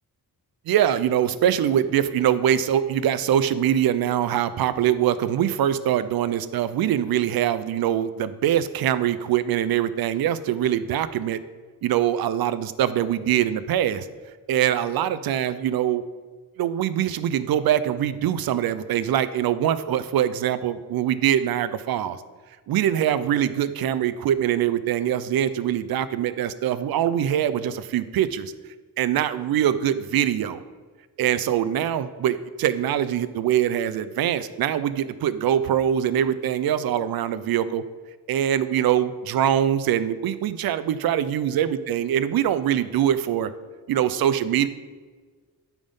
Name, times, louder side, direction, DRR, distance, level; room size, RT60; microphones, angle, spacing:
voice 1, 0.7-11.4 11.8-14.1 14.5-16.0 16.6-22.2 22.7-28.5 29.0-30.6 31.2-37.8 38.3-43.5 43.9-44.7, right 10 dB, 75° right, 14 dB, 0.5 m, -23 dB
9.0 x 3.6 x 5.4 m, 1.4 s
wide cardioid pair, 145°, 37 cm